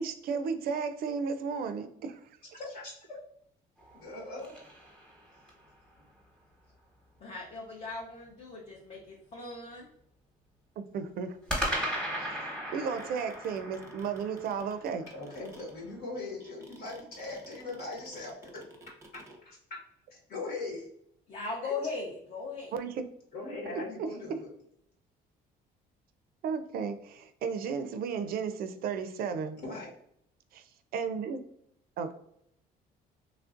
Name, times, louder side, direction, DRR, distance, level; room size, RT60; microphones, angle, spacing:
voice 1, 0.0-2.2 10.8-11.4 12.2-12.3 12.7-15.1 22.7-23.1 24.0-24.1 26.4-29.6 30.5-30.6 30.9-31.5 32.0-32.1, right 6 dB, 60° right, 9 dB, 0.4 m, -34 dB
voice 2, 2.5-3.2 3.9-4.5 15.1-19.8 20.1-20.9 21.6-21.7 23.3-24.5 29.6-29.9, left 2 dB, 70° left, -3 dB, 1.3 m, -40 dB
sound 1, 3.8-5.7 11.5-15.8, equal, 5° left, 1.0 m, -37 dB
voice 3, 7.2-9.9 21.3-22.7, left 4 dB, 40° left, -2 dB, 0.7 m, -38 dB
sound 2, 12.7-19.4, right 2 dB, 15° right, 0.6 m, -54 dB
3.1 x 2.5 x 2.5 m, 0.71 s
cardioid pair, 110°, 17 cm